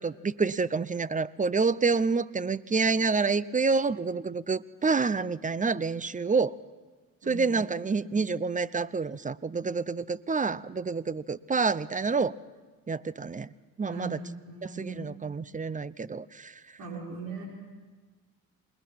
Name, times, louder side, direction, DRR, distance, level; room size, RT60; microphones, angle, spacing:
voice 1, 0.0-6.6 7.3-12.3 12.9-13.5 13.8-14.2 14.6-16.5, right 4 dB, 20° right, 19 dB, 0.6 m, -28 dB
voice 2, 7.2-7.5 7.9-8.1 13.9-15.1 16.8-17.5, right 4 dB, 90° right, -1 dB, 5.3 m, -40 dB
27.5 x 20.5 x 5.8 m, 1.3 s
cardioid pair, 75°, 35 cm